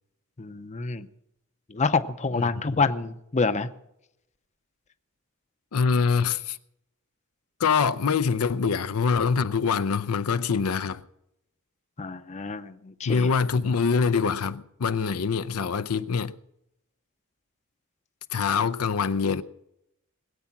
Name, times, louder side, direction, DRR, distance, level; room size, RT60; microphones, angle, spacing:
voice 1, 0.4-1.1 1.7-3.7 12.0-13.3, left 4 dB, 30° left, 0.7 m, -27 dB
voice 2, 2.3-2.8 5.7-6.6 7.6-11.0 13.1-16.3 18.3-19.4, left 5 dB, 80° left, 0.6 m, -24 dB
20.5 x 8.5 x 6.0 m
head